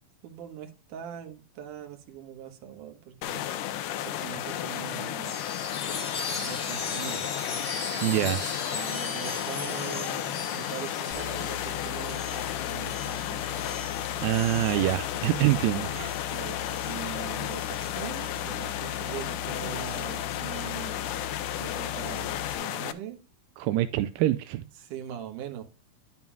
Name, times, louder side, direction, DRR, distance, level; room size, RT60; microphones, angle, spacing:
voice 1, 0.2-3.4 4.0-5.4 6.4-7.3 8.7-13.4 16.3-16.6 16.9-21.0 21.6-23.2 24.8-25.6, right 10 dB, 65° right, 2.5 m, -41 dB
sound 1, 3.2-22.9, left 11 dB, 80° left, 1.9 m, -33 dB
Chime, 5.2-19.2 19.7-22.5, left 3 dB, 25° left, 2.7 m, -40 dB
voice 2, 8.0-8.6 14.2-16.2 23.6-24.6, right 15 dB, 85° right, 2.1 m, -25 dB
sound 2, 11.1-22.5, left 10 dB, 35° right, 1.4 m, -41 dB
10.5 x 7.2 x 2.3 m
omnidirectional pair, 4.5 m